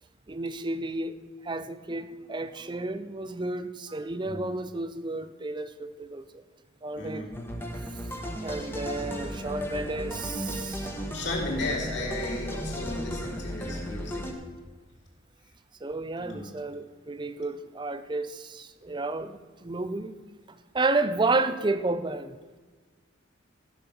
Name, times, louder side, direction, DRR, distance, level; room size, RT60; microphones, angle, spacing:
voice 1, 0.3-1.2 1.4-6.3 6.8-7.3 7.9-8.0 8.4-11.1 15.8-20.2 20.5-22.6, right 2 dB, 20° right, 12 dB, 0.5 m, -31 dB
voice 2, 6.9-7.3 8.3-8.5 11.1-14.2 16.2-16.5, left 2 dB, 55° left, -2 dB, 3.3 m, -34 dB
sound 1, 7.3-14.3, equal, 10° left, 1.1 m, -35 dB
14.0 x 6.3 x 6.9 m, 1.4 s
head